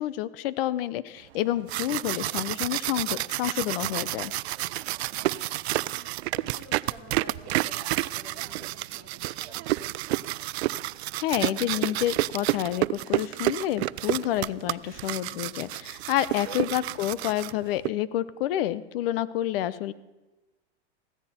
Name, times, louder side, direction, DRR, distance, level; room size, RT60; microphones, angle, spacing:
voice 1, 0.0-4.3 11.2-19.9, left 13 dB, 55° left, 17 dB, 0.8 m, -29 dB
sound 1, 1.5-17.9, right 17 dB, 70° right, 0.5 m, -30 dB
voice 2, 5.1-5.7 6.3-9.7, left 2 dB, 35° left, 3 dB, 4.0 m, -50 dB
16.0 x 13.5 x 4.4 m, 1.1 s
supercardioid pair, 145°, 34 cm